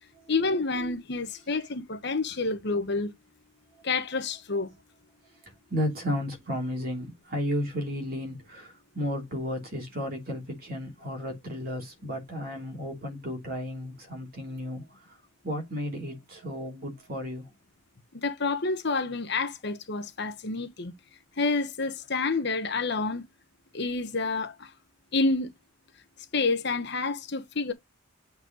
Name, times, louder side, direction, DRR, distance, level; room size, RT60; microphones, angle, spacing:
voice 1, 0.3-3.1 3.8-4.7 18.1-20.9 21.4-23.2 23.7-24.7 25.1-25.5 26.3-27.7, left 3 dB, 55° left, 1.1 m, -28 dB
voice 2, 5.7-15.2 15.4-17.5, equal, 45° right, 3.1 m, -33 dB
7.8 x 4.4 x 4.0 m
head